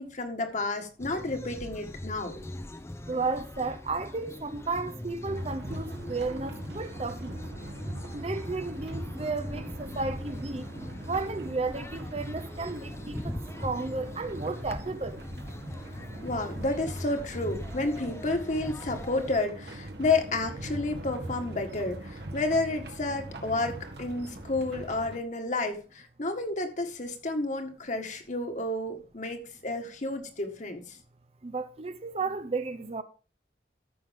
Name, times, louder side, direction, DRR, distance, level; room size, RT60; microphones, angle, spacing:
voice 1, 0.0-2.4 16.2-31.0, left 2 dB, 45° left, 1.7 m, -31 dB
sound 1, 1.0-19.4, left 1 dB, 15° left, 0.7 m, -41 dB
voice 2, 3.1-7.4 8.1-10.7 11.1-15.2 31.4-33.0, right 3 dB, 35° right, 0.7 m, -33 dB
sound 2, 5.3-25.2, right 1 dB, 70° right, 1.9 m, -41 dB
14.0 x 6.0 x 3.6 m
head